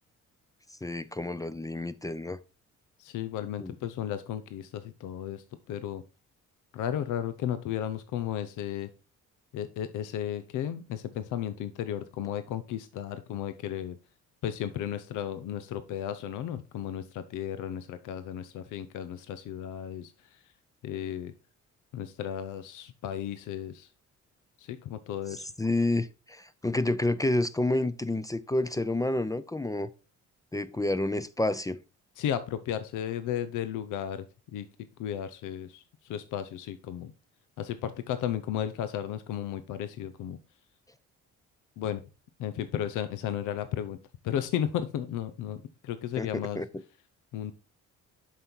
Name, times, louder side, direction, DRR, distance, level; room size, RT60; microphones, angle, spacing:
voice 1, 0.8-2.4 3.6-3.8 25.3-29.9 30.5-31.8 46.2-46.3 46.6-46.7, left 2 dB, 10° left, 0.5 m, -29 dB
voice 2, 3.0-6.0 6.7-8.9 9.5-14.0 14.4-20.1 20.8-21.3 21.9-23.9 24.6-25.5 32.2-34.2 34.5-34.7 35.0-35.8 36.1-37.1 37.6-40.4 41.8-42.0 42.4-44.0 44.2-46.6 47.3-47.5, left 10 dB, 90° left, 0.7 m, -34 dB
7.5 x 5.5 x 4.4 m
cardioid pair, 90°, 30 cm